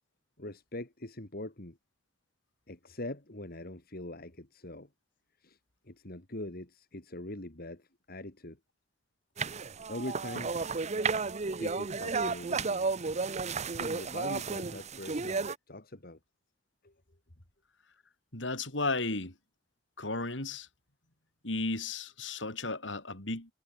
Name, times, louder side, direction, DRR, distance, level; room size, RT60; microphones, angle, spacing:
voice 1, 0.4-1.8 2.7-4.9 5.4-5.6 5.8-8.6 9.9-10.5 11.2-12.9 13.8-16.2 16.8-16.9, left 1 dB, 55° left, 3.0 m, -42 dB
sound 1, 9.4-15.5, right 4 dB, 40° right, 0.8 m, -33 dB
voice 2, 18.3-19.3 20.0-20.7 21.4-23.5, left 3 dB, 75° left, 5.7 m, -34 dB
head